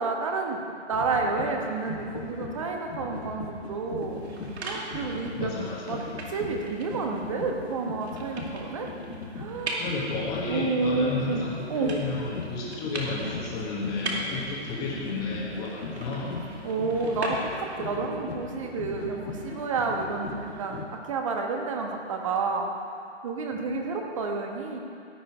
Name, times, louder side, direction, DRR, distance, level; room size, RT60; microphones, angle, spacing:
voice 1, 0.0-4.2 4.6-5.5 5.9-6.0 6.3-8.9 9.3-9.8 10.5-11.4 11.7-11.9 16.6-22.7 23.2-24.8, right 4 dB, 25° right, 2 dB, 1.2 m, -30 dB
sound 1, 0.9-20.8, left 3 dB, 60° left, 2.5 m, -39 dB
Opening a CD case, 4.0-17.9, right 2 dB, 60° right, 2.4 m, -40 dB
voice 2, 5.3-6.0 9.8-16.3 23.5-23.8, left 3 dB, 10° left, -4 dB, 1.4 m, -33 dB
16.5 x 9.5 x 4.8 m, 2.4 s
hypercardioid pair, 165°, 36 cm